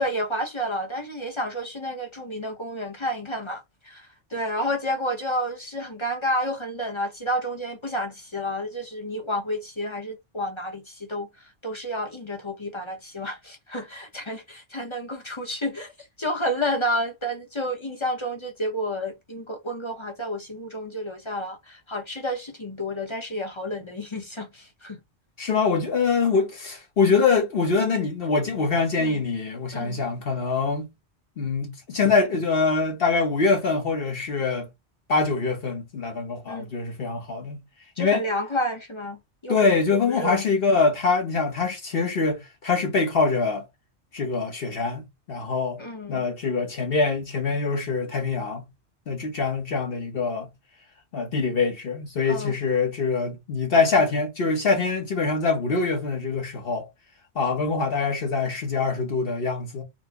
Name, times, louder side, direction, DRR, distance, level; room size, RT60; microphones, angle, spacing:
voice 1, 0.0-11.3 11.6-15.9 16.2-25.0 29.0-29.2 29.7-30.0 36.5-36.7 38.0-39.6 39.9-40.4 45.8-46.2 52.3-52.5, equal, 30° left, 0.7 m, -30 dB
voice 2, 25.4-30.9 31.4-34.7 35.1-37.6 38.0-38.2 39.5-43.6 44.1-45.8 46.1-48.7 49.1-50.5 51.1-56.9 57.3-59.8, left 4 dB, 55° left, 1.1 m, -24 dB
4.3 x 2.1 x 2.8 m
omnidirectional pair, 1.2 m